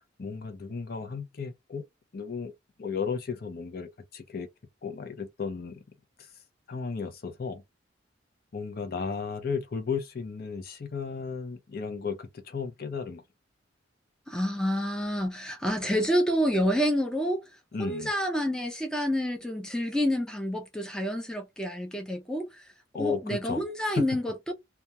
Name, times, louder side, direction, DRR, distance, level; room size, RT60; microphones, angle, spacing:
voice 1, 0.2-1.8 2.1-2.5 2.8-4.5 4.8-5.8 6.7-7.6 8.5-13.2 17.7-18.1 22.9-23.6, left 5 dB, 50° left, 0.5 m, -34 dB
voice 2, 14.3-17.4 17.8-22.6 23.0-24.5, equal, 5° left, 0.4 m, -28 dB
2.2 x 2.2 x 2.8 m
head